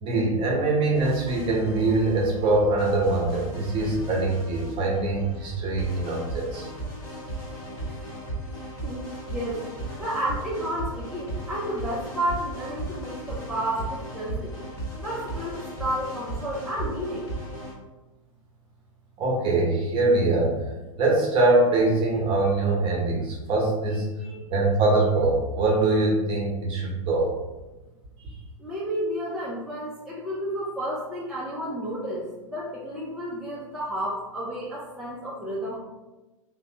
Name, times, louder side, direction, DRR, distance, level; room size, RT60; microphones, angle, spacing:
voice 1, 0.0-6.7 19.2-20.5 21.0-24.1 24.5-27.3 28.2-28.3, right 2 dB, 30° right, -2 dB, 0.9 m, -23 dB
sound 1, 0.9-17.7, right 1 dB, 20° left, 1.2 m, -36 dB
voice 2, 8.8-9.6 10.0-14.5 15.0-17.3 23.9-24.4 28.6-35.8, right 1 dB, ahead, -7 dB, 0.4 m, -31 dB
3.0 x 2.2 x 2.8 m, 1.1 s
hypercardioid pair, 110°, 18 cm